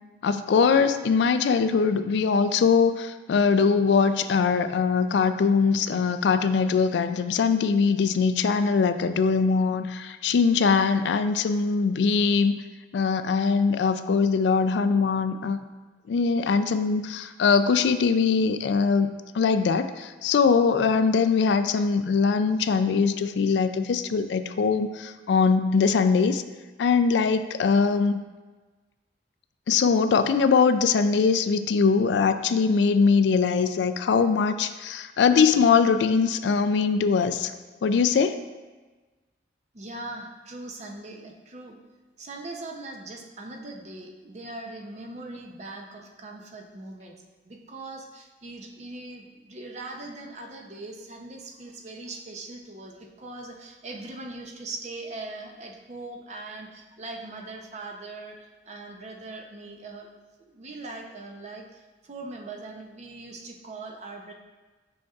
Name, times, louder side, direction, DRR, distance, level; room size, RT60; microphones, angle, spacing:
voice 1, 0.2-12.6 12.9-15.6 16.1-26.4 26.8-28.2 29.7-37.5 37.8-38.4, left 5 dB, 65° left, 10 dB, 0.3 m, -22 dB
voice 2, 39.7-41.8 42.2-47.2 47.4-60.1 60.5-64.3, right 2 dB, 35° right, 2 dB, 0.6 m, -40 dB
7.5 x 5.7 x 2.4 m, 1.3 s
head